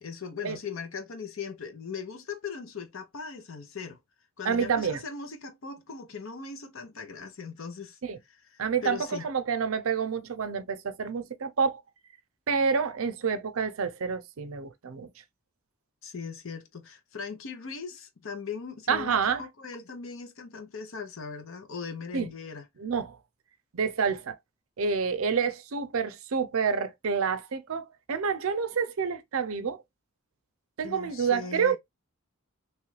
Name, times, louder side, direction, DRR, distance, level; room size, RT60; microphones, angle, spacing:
voice 1, 0.0-4.0 4.4-8.0 8.2-9.2 16.0-22.6 30.8-31.8, left 5 dB, 65° left, 0.6 m, -39 dB
voice 2, 4.4-5.0 8.0-8.2 8.6-11.8 12.5-15.1 18.9-19.4 22.1-22.3 22.8-23.2 23.7-24.4 24.8-29.8 30.8-31.8, right 6 dB, 75° right, 0.5 m, -28 dB
3.1 x 2.4 x 3.1 m
head